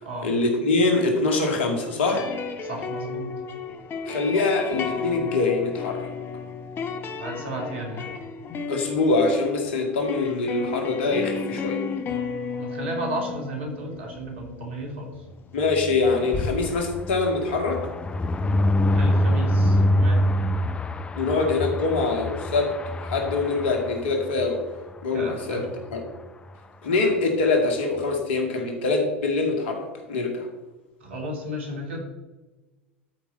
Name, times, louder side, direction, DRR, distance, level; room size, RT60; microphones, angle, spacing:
voice 1, 0.2-2.3 4.1-6.1 8.7-11.8 15.5-17.8 21.2-24.6 25.0-25.6 25.9-26.0 26.8-30.5, left 3 dB, 65° left, 3 dB, 2.2 m, -24 dB
sound 1, 2.0-15.2 16.3-17.2, left 5 dB, 35° left, 1.0 m, -33 dB
voice 2, 2.6-3.3 7.2-8.1 12.6-15.2 18.8-20.3 25.1-25.7 31.0-32.0, right 1 dB, 70° right, 0 dB, 2.8 m, -33 dB
sound 2, 15.6-24.5 24.9-25.1 25.3-25.4 25.7-26.0, left 1 dB, 15° left, 0.6 m, -25 dB
13.0 x 5.3 x 4.2 m, 1.2 s
figure-of-eight pair, 80°, 6 cm